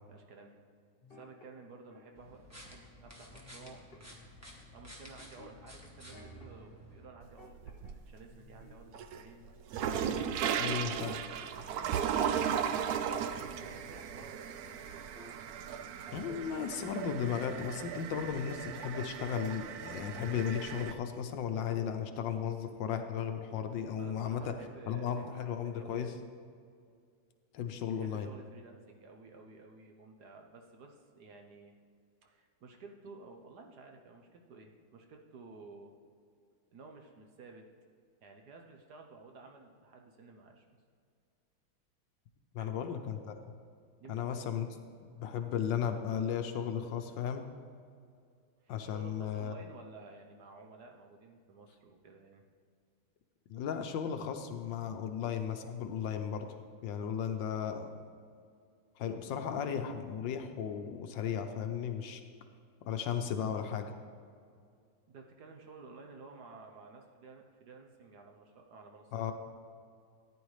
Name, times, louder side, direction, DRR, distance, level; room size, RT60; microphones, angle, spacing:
voice 1, 0.1-0.6 1.1-3.8 4.1-4.2 4.7-9.4 11.5-14.9 24.0-26.1 27.9-31.7 32.2-35.9 36.7-37.7 38.2-40.6 42.6-42.9 44.0-44.4 48.6-52.4 64.5-64.6 65.1-69.3, right 4 dB, 60° right, 3 dB, 1.2 m, -53 dB
sound 1, 1.0-2.1 2.6-3.0 3.3-4.6 5.2-6.7 7.1-8.0 8.3-10.5 10.8-15.7 16.1-16.7 17.0-18.1 18.3-18.6, left 4 dB, 35° left, 1.0 m, -59 dB
sound 2, 2.2-7.1, equal, 10° right, 1.0 m, -52 dB
sound 3, 7.2-8.2 8.6-20.9, right 8 dB, 85° right, 0.8 m, -36 dB
voice 2, 10.6-11.2 16.1-24.5 24.9-26.1 27.5-28.3 42.5-43.3 44.1-44.7 45.1-47.4 48.7-49.5 53.5-56.5 56.8-57.9 59.0-62.2 62.8-63.9 69.1-69.3, left 8 dB, 70° left, 7 dB, 1.3 m, -35 dB
14.0 x 9.6 x 3.2 m, 2.3 s
omnidirectional pair, 2.2 m